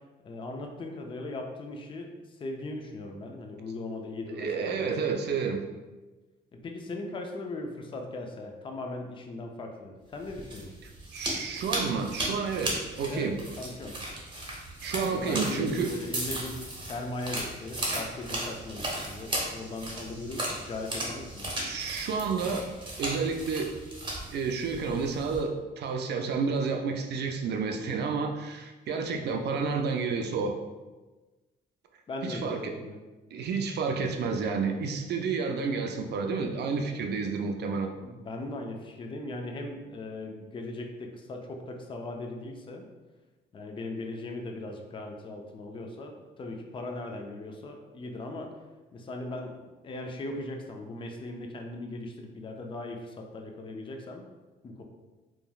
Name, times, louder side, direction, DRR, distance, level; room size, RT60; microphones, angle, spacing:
voice 1, 0.2-2.1 2.4-4.9 6.5-10.7 13.1-13.3 13.6-14.0 15.1-21.6 29.2-29.3 32.1-33.0 38.0-42.9 43.5-48.5 48.9-54.3 54.6-54.8, left 2 dB, 25° left, 2 dB, 0.4 m, -38 dB
voice 2, 4.3-5.6 11.1-13.4 14.8-15.9 21.6-22.6 23.0-23.7 24.3-30.5 32.2-32.7 33.3-37.9, right 5 dB, 60° right, 4 dB, 0.4 m, -30 dB
sound 1, 10.2-25.4, right 1 dB, 25° right, 0.8 m, -36 dB
3.0 x 2.2 x 2.3 m, 1.2 s
cardioid pair, 90°, 20 cm